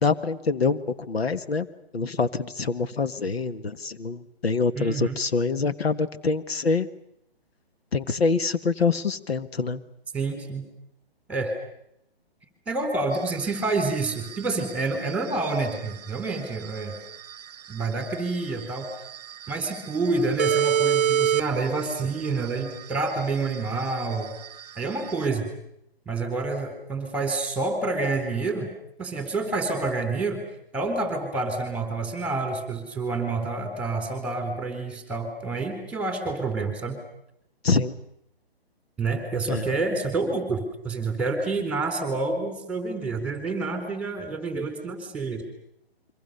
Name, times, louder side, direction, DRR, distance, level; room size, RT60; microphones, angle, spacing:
voice 1, 0.0-1.7 1.9-6.9 7.9-9.8 37.6-37.9 39.5-39.7, left 4 dB, 75° left, 11 dB, 1.7 m, -25 dB
voice 2, 4.8-5.2 10.1-10.6 11.3-11.5 12.7-17.0 17.7-18.9 19.5-24.3 24.8-25.5 26.1-28.7 29.0-30.4 30.7-37.0 39.0-45.4, right 3 dB, 5° right, 6 dB, 4.0 m, -28 dB
sound 1, 13.1-25.3, right 9 dB, 40° right, 1.0 m, -29 dB
28.5 x 24.5 x 6.8 m, 0.77 s
hypercardioid pair, 150°, 31 cm